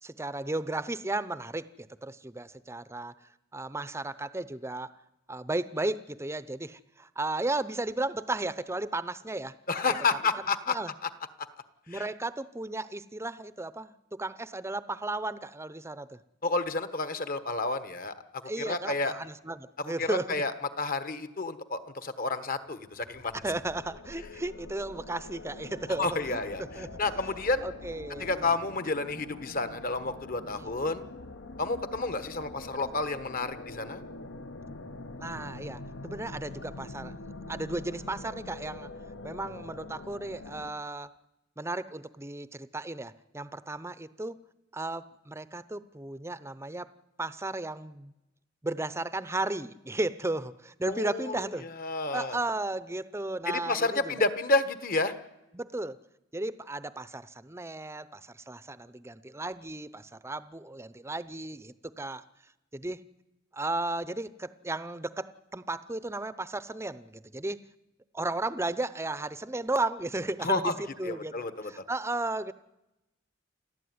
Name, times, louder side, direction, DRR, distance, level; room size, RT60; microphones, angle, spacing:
voice 1, 0.0-3.1 3.5-5.0 5.3-9.5 10.3-10.4 10.7-10.9 11.9-16.2 18.4-20.4 23.4-26.4 26.7-26.9 27.6-28.5 30.4-30.7 35.2-38.9 39.2-41.1 41.6-44.4 44.7-46.9 47.2-48.1 48.6-51.7 52.1-54.1 55.5-56.0 56.3-62.2 62.7-63.0 63.5-67.6 68.1-71.3 71.6-72.5, right 2 dB, 15° right, 15 dB, 0.7 m, -34 dB
voice 2, 9.7-10.8 11.0-11.1 11.4-11.5 11.9-12.0 16.4-19.1 19.8-20.5 20.8-23.3 26.0-26.6 27.0-27.6 28.2-31.0 31.6-34.0 50.9-52.4 53.5-55.1 70.4-70.7 71.0-71.7, left 3 dB, 45° left, 11 dB, 1.4 m, -30 dB
sound 1, 22.7-40.7, left 2 dB, 65° left, 1.0 m, -44 dB
29.0 x 13.0 x 9.5 m, 0.96 s
head